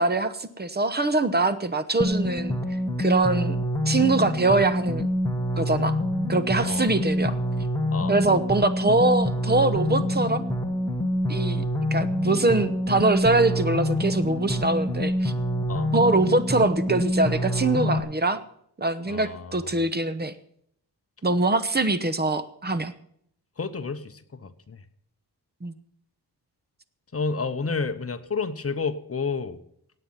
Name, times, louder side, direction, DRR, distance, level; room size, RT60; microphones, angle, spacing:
voice 1, 0.0-2.6 3.0-3.6 3.9-5.1 5.6-6.0 6.3-7.4 8.1-10.4 11.3-11.6 11.9-15.3 15.9-18.4 18.8-20.3 21.2-22.9 25.6-25.7, right 2 dB, 25° right, 12 dB, 0.9 m, -23 dB
sound 1, 2.0-18.0, equal, 10° left, 1.4 m, -26 dB
voice 2, 19.1-19.8 23.6-24.8 27.1-29.6, left 4 dB, 35° left, 9 dB, 1.0 m, -30 dB
17.5 x 8.7 x 5.7 m, 0.68 s
wide cardioid pair, 145°, 41 cm